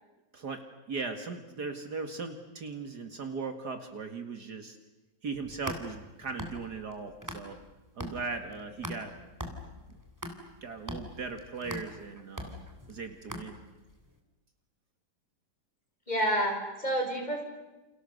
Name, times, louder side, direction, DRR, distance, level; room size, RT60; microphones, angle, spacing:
voice 1, 0.3-4.8 5.2-7.6 8.0-9.1 10.6-13.6, right 4 dB, 55° right, 6 dB, 2.5 m, -38 dB
sound 1, 5.3-7.7 8.0-13.9, equal, 10° right, 3.2 m, -41 dB
voice 2, 16.1-17.4, right 1 dB, 20° left, 2 dB, 5.6 m, -29 dB
29.5 x 29.5 x 6.7 m, 1.1 s
omnidirectional pair, 2.1 m